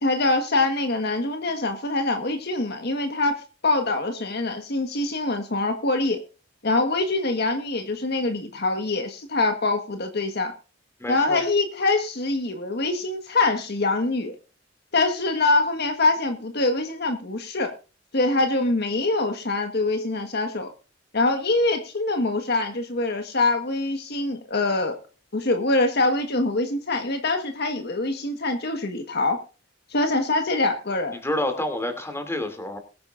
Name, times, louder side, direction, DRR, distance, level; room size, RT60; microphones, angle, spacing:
voice 1, 0.0-3.3 3.6-6.2 6.6-10.5 11.1-14.3 14.9-17.7 18.1-20.7 21.1-25.0 25.3-29.4 29.9-31.1, left 2 dB, 55° left, 5 dB, 1.5 m, -24 dB
voice 2, 11.0-11.4 31.1-32.8, left 1 dB, 15° left, 6 dB, 2.8 m, -28 dB
22.0 x 9.5 x 2.6 m, 0.35 s
head